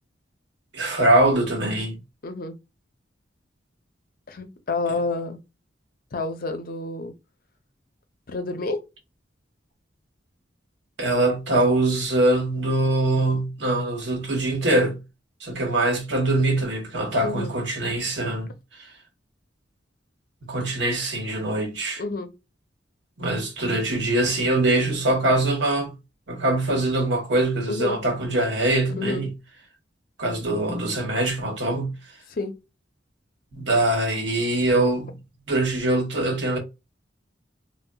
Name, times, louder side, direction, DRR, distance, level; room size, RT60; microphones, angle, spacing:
voice 1, 0.7-2.0 11.0-15.0 15.4-18.5 20.4-22.0 23.2-25.9 26.3-29.3 30.2-31.9 33.5-35.2 35.5-36.6, right 1 dB, 70° right, 1.0 m, -23 dB
voice 2, 2.2-2.6 4.3-5.4 6.1-7.1 8.3-8.8 17.2-17.5 22.0-22.3 27.7-28.0 29.0-29.3 32.3-32.5 36.2-36.3, left 3 dB, 50° left, 0.6 m, -29 dB
3.8 x 2.0 x 2.2 m
head